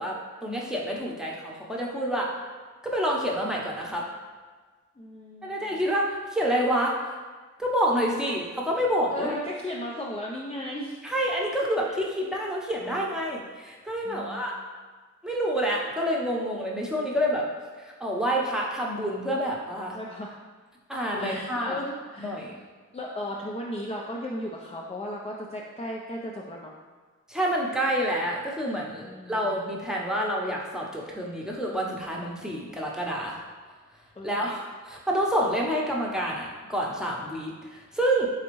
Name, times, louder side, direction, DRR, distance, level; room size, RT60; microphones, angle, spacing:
voice 1, 0.0-2.3 2.8-4.0 5.4-6.9 7.6-9.4 11.0-14.6 15.2-17.4 17.8-20.0 20.9-21.8 22.2-22.6 27.3-33.4 34.2-38.3, equal, ahead, -3 dB, 0.8 m, -28 dB
voice 2, 5.0-5.6 8.2-8.3 9.1-11.0 11.9-12.0 14.0-14.5 19.9-20.4 21.1-22.6 22.9-26.7 29.0-29.6 34.2-34.5, left 1 dB, 20° left, -3 dB, 0.4 m, -36 dB
4.0 x 3.5 x 3.0 m, 1.4 s
cardioid pair, 55°, 30 cm